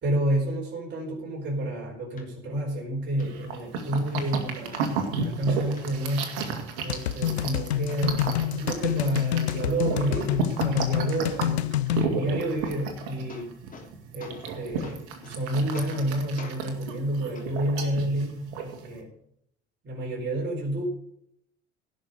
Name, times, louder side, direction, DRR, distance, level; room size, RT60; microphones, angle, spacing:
voice 1, 0.0-6.4 6.8-11.8 12.1-13.6 14.1-19.1 19.8-20.8, right 1 dB, 30° right, -3 dB, 4.4 m, -30 dB
sound 1, 2.2-2.3 2.7-2.8 3.2-3.3 3.8-4.2 4.7-5.3 5.8-5.9 6.2-7.0 7.5-7.6 7.9-8.6 8.8-9.9 10.1-10.7 12.7-12.8 13.1-13.9 14.2-14.5 14.8-15.4 15.7-16.1 16.4-16.6 17.3-17.5 18.4-18.5, left 4 dB, 25° left, 3.2 m, -46 dB
sound 2, 3.2-19.0, right 4 dB, 55° right, 2.5 m, -33 dB
sound 3, 6.9-12.1, left 12 dB, 70° left, 0.8 m, -27 dB
17.0 x 6.3 x 6.5 m, 0.69 s
figure-of-eight pair, 65°, 34 cm